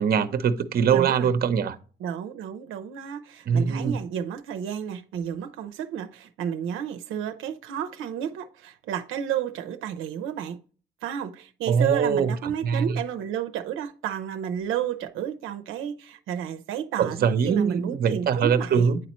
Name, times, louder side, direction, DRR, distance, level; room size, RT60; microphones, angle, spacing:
voice 1, 0.0-1.8 3.5-4.0 11.7-12.3 12.6-12.9 17.0-19.0, right 6 dB, 50° right, 0.7 m, -22 dB
voice 2, 0.9-1.3 2.0-10.6 11.0-18.9, right 9 dB, 85° right, 0.6 m, -32 dB
9.5 x 4.1 x 3.0 m
cardioid pair, 90°, 20 cm